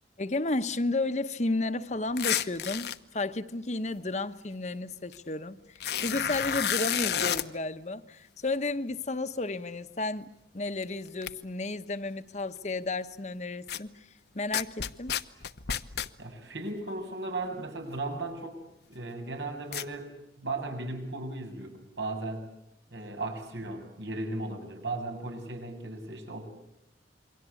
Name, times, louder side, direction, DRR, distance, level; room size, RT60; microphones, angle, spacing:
voice 1, 0.2-14.1 14.3-15.2, left 2 dB, 40° left, 1.0 m, -32 dB
sound 1, 2.2-3.0 5.1-5.2 5.7-7.5 10.8-10.9 11.2-11.3 13.7-13.8 14.5-16.1 19.7-19.8, left 9 dB, 65° left, 1.0 m, -30 dB
voice 2, 16.2-18.6 18.9-22.5 22.9-26.5, right 2 dB, 90° right, 7.3 m, -36 dB
28.0 x 23.5 x 8.4 m
head